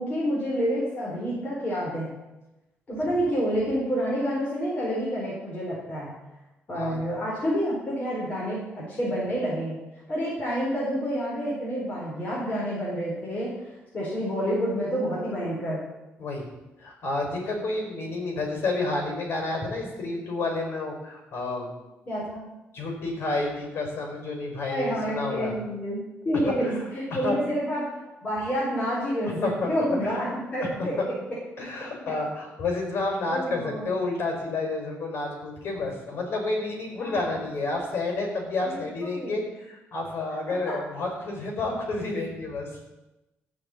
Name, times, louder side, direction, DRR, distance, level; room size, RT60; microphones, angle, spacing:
voice 1, 0.0-2.1 2.9-6.1 6.7-9.8 10.1-13.5 13.9-15.8 22.1-22.4 24.7-27.9 28.2-30.9 33.3-33.9 37.0-37.2 38.6-39.4 40.6-40.7, equal, 30° left, -7 dB, 4.4 m, -28 dB
voice 2, 16.8-21.7 22.7-25.5 26.4-26.8 27.1-27.4 29.2-29.7 30.0-30.2 30.6-31.1 31.6-42.9, left 2 dB, 55° left, 2 dB, 5.1 m, -30 dB
15.5 x 5.8 x 8.5 m, 0.99 s
cardioid pair, 135°, 5 cm